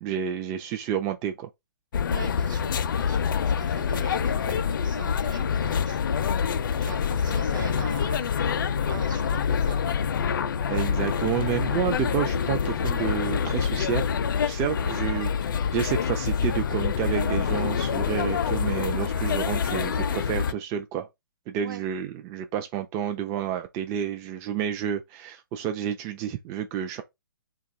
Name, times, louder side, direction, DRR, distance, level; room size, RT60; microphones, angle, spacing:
voice 1, 0.0-1.5 10.7-14.2 14.4-15.3 15.7-21.1 21.5-27.0, right 9 dB, 25° right, 0.4 m, -30 dB
sound 1, 1.9-20.5, left 7 dB, 65° left, 0.4 m, -26 dB
voice 2, 2.1-6.3 6.6-8.4 8.9-10.0 14.8-14.9 21.6-21.8, right 6 dB, 60° right, 1.2 m, -42 dB
2.8 x 2.3 x 3.9 m
hypercardioid pair, 130°, 12 cm